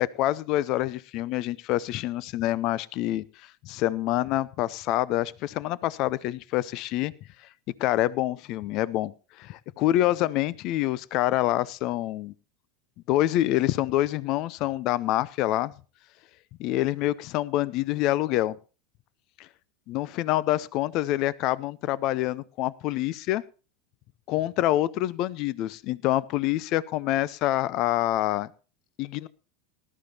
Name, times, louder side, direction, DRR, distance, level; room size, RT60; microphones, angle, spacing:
voice 1, 0.0-3.3 3.6-7.1 7.8-9.1 9.4-12.3 13.1-15.7 16.6-18.6 19.4-19.5 19.9-23.4 24.3-28.5 29.0-29.3, left 15 dB, 50° left, 21 dB, 0.6 m, -26 dB
19.0 x 12.0 x 2.9 m, 0.35 s
hypercardioid pair, 85°, 0 cm